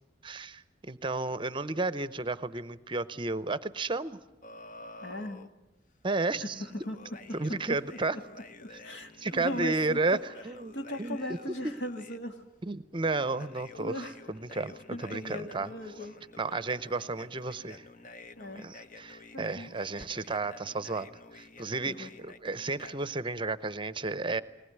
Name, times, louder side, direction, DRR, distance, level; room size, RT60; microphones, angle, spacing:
voice 1, 0.2-4.2 6.0-6.6 7.3-8.2 8.7-8.8 9.2-10.2 10.4-10.7 11.0-11.2 12.6-15.7 16.4-17.9 18.6-24.4, right 3 dB, 25° right, 15 dB, 0.7 m, -32 dB
sound 1, 4.4-5.5 6.5-12.2 13.1-23.1, left 3 dB, 45° left, 0.9 m, -50 dB
voice 2, 5.0-5.4 6.4-7.0 7.3-7.8 8.1-8.2 8.6-10.2 10.7-12.4 13.8-14.2 14.9-16.1 18.4-18.7 19.3-19.7 21.9-22.1, equal, 70° left, 5 dB, 2.1 m, -38 dB
20.0 x 19.0 x 9.5 m, 1.0 s
head